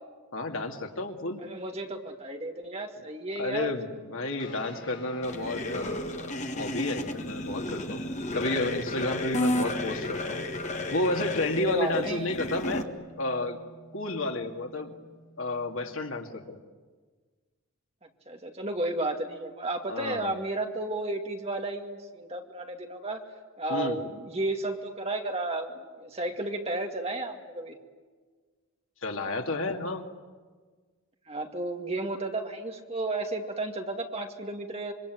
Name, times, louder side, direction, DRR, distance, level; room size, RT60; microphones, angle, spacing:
voice 1, 0.3-1.4 3.4-8.0 8.3-10.4 10.9-12.8 13.2-13.6 13.9-14.9 15.4-16.6 19.9-20.3 23.7-24.0 29.0-30.1, left 2 dB, 70° left, 3 dB, 2.4 m, -31 dB
voice 2, 1.4-3.7 9.3-9.5 11.6-12.3 18.3-23.2 23.6-27.8 31.3-34.9, right 2 dB, 30° right, 3 dB, 2.3 m, -33 dB
sound 1, 4.4-16.1, right 2 dB, 50° left, 3.6 m, -48 dB
sound 2, 5.2-12.8, left 1 dB, 35° left, 1.6 m, -33 dB
26.5 x 24.0 x 9.4 m, 1.5 s
head